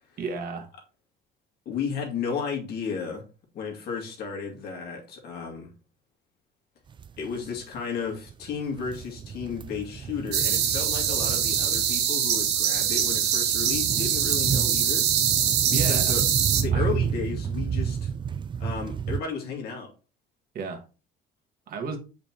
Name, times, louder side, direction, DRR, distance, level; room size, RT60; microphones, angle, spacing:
voice 1, 0.2-0.7 15.7-16.1 16.7-17.0 20.5-20.8 21.7-22.0, right 4 dB, 60° right, 1.7 m, -33 dB
voice 2, 1.7-3.2 3.5-5.7 7.2-15.1 15.7-16.2 16.5-18.1 18.6-19.9, left 6 dB, 70° left, 2.3 m, -33 dB
sound 1, 6.9-7.8 8.3-19.2, right 7 dB, 30° right, 0.3 m, -31 dB
sound 2, 10.3-16.6, right 9 dB, 80° right, 1.3 m, -24 dB
6.9 x 5.1 x 2.9 m
cardioid pair, 110°, 17 cm